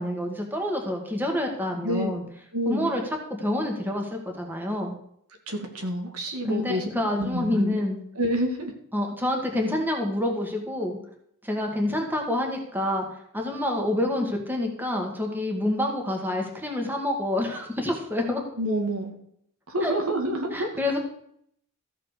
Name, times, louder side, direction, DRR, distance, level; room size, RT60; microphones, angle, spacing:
voice 1, 0.0-2.2 2.7-3.0 3.4-5.0 6.4-8.0 8.9-11.0 11.4-18.4 19.8-19.9 20.5-21.0, left 1 dB, 10° right, 1 dB, 1.9 m, -27 dB
voice 2, 1.8-2.2 2.5-2.9 5.5-6.8 7.2-7.8 8.2-8.7 18.6-19.1 19.7-20.7, right 1 dB, 80° right, 3 dB, 2.2 m, -28 dB
14.0 x 5.9 x 6.7 m, 0.68 s
head